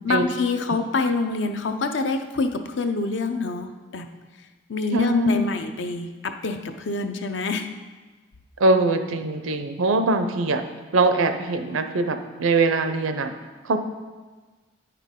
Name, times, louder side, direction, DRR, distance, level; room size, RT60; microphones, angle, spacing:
voice 1, 0.0-4.1 4.7-7.7, left 3 dB, 65° left, 7 dB, 0.5 m, -26 dB
voice 2, 4.9-5.4 8.6-10.6 10.9-13.3 13.6-13.8, right 2 dB, 90° right, 8 dB, 0.6 m, -22 dB
9.0 x 5.9 x 3.7 m, 1.3 s
head